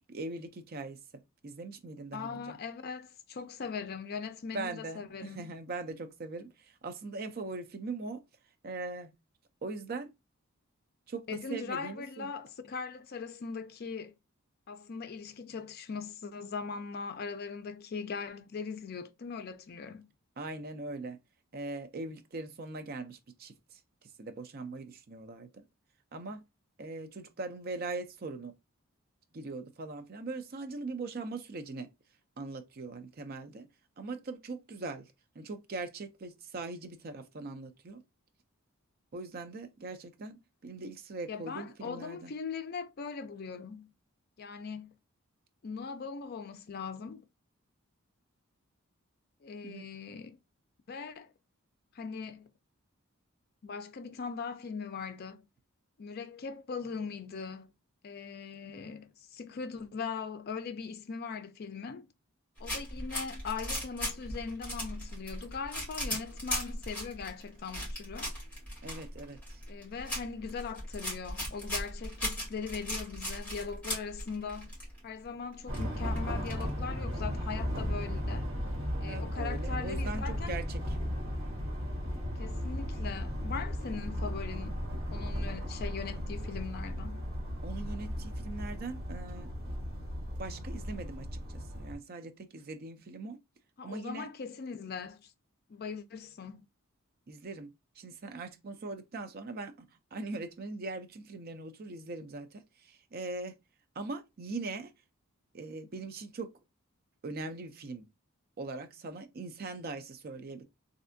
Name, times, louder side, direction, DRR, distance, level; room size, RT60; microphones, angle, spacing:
voice 1, 0.1-2.6 4.5-8.2 8.6-9.2 9.6-10.1 11.1-12.3 20.4-21.2 21.5-23.5 24.2-25.6 26.1-26.4 26.8-28.5 29.3-31.9 32.4-33.7 34.0-35.1 35.4-38.0 39.1-42.3 49.6-49.9 68.8-69.6 79.0-80.9 87.6-89.5 90.4-93.4 93.8-94.3 97.3-97.7 98.0-103.5 104.0-104.9 105.5-106.5 107.2-108.0 108.6-110.6, right 3 dB, 45° right, 0.5 m, -41 dB
voice 2, 2.1-5.5 11.3-14.1 14.7-20.1 41.3-43.9 44.4-44.9 45.6-47.2 49.4-50.4 50.9-51.3 51.9-52.5 53.6-55.5 56.0-57.7 58.0-62.1 62.6-68.3 69.7-74.7 75.0-78.5 79.0-80.6 82.4-84.8 85.1-87.3 93.8-95.3 95.7-96.6, left 5 dB, 45° left, 0.4 m, -40 dB
sound 1, 62.6-75.0 75.2-75.3 75.5-76.9, left 1 dB, 5° left, 1.8 m, -38 dB
sound 2, 75.7-91.9, equal, 75° right, 1.2 m, -35 dB
3.2 x 2.6 x 2.6 m
head